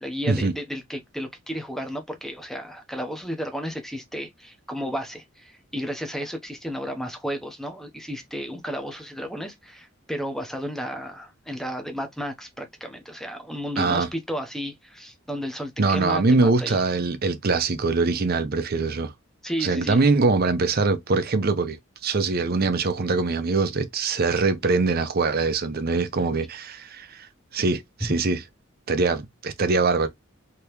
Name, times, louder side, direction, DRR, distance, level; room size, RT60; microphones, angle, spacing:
voice 1, 0.0-16.8 19.4-20.0, equal, ahead, 0.7 m, -33 dB
voice 2, 13.8-14.1 15.8-19.1 19.6-27.3 27.5-28.4 28.9-30.1, right 3 dB, 50° right, 0.6 m, -23 dB
3.4 x 2.9 x 2.9 m
head